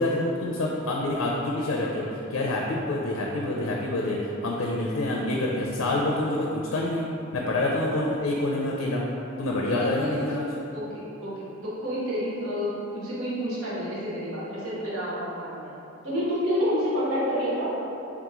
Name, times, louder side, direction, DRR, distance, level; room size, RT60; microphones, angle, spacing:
voice 1, 0.0-7.1 7.3-9.0 9.4-10.5, left 1 dB, 80° left, -2 dB, 0.4 m, -27 dB
voice 2, 9.7-10.1 10.7-15.7 16.0-17.7, equal, 90° right, -8 dB, 1.2 m, -29 dB
3.6 x 2.9 x 3.6 m, 2.8 s
head